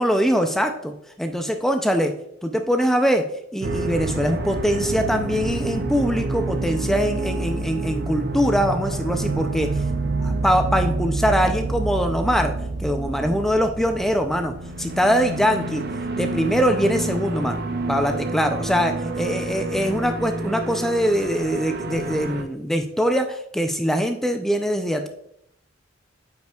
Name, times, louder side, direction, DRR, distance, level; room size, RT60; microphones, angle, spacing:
voice 1, 0.0-2.1 2.4-3.3 3.5-9.8 10.2-12.5 12.8-15.8 16.2-25.1, equal, ahead, 5 dB, 0.4 m, -22 dB
sound 1, 3.6-22.4, right 2 dB, 55° right, 0.6 m, -28 dB
9.1 x 5.5 x 2.3 m, 0.73 s
head